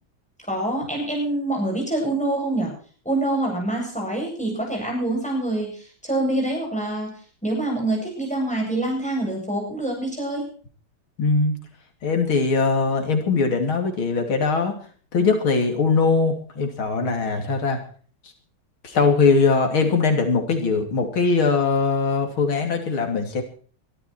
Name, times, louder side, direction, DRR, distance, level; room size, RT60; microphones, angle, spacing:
voice 1, 0.5-2.7 3.0-7.1 7.4-10.4, right 1 dB, 5° left, -1 dB, 7.9 m, -25 dB
voice 2, 11.2-11.6 12.0-14.8 15.1-17.8 18.2-18.3 18.8-23.4, left 4 dB, 90° left, 4 dB, 3.6 m, -21 dB
22.0 x 13.0 x 4.5 m, 0.43 s
omnidirectional pair, 2.2 m